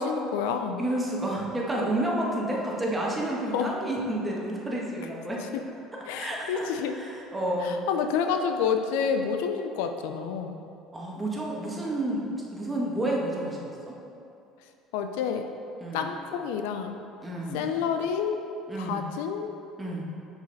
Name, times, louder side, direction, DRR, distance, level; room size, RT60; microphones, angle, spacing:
voice 1, 0.0-0.8 3.5-3.7 5.5-5.6 6.1-6.9 7.6-10.6 14.9-15.5 15.9-17.0 17.5-18.4 18.8-19.5, left 6 dB, 80° left, 6 dB, 0.4 m, -29 dB
voice 2, 0.8-5.4 6.2-7.8 10.9-13.9 15.8-16.1 17.2-17.7 18.7-19.1 19.8-20.0, right 1 dB, 15° right, -3 dB, 1.5 m, -30 dB
6.1 x 5.2 x 4.1 m, 2.6 s
hypercardioid pair, 75°, 0 cm